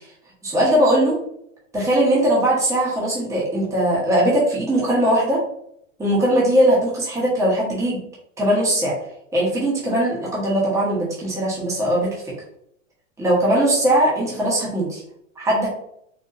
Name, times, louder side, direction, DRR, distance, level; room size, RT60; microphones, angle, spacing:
voice 1, 0.4-1.2 1.7-5.4 6.0-8.0 8.4-8.9 9.3-12.1 13.2-15.0 15.4-15.7, right 1 dB, 10° right, -5 dB, 1.1 m, -20 dB
4.1 x 2.7 x 2.6 m, 0.72 s
hypercardioid pair, 130°, 39 cm